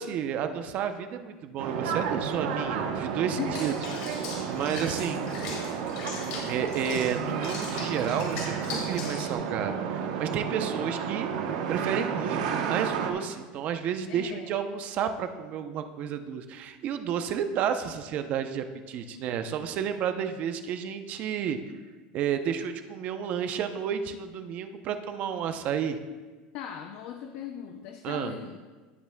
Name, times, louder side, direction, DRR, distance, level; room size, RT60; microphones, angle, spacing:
voice 1, 0.0-3.7 4.0-5.2 6.5-11.3 11.7-21.6 22.1-26.0 28.0-28.4, right 8 dB, 40° right, 8 dB, 0.6 m, -31 dB
sound 1, 1.6-13.1, right 6 dB, 90° right, 0.9 m, -31 dB
Water / Bathtub (filling or washing), 3.5-9.3, left 4 dB, 80° left, 2.2 m, -40 dB
voice 2, 14.1-14.5 26.5-28.6, left 9 dB, 55° left, 5 dB, 0.5 m, -38 dB
17.0 x 5.8 x 2.2 m, 1.3 s
cardioid pair, 160°, 4 cm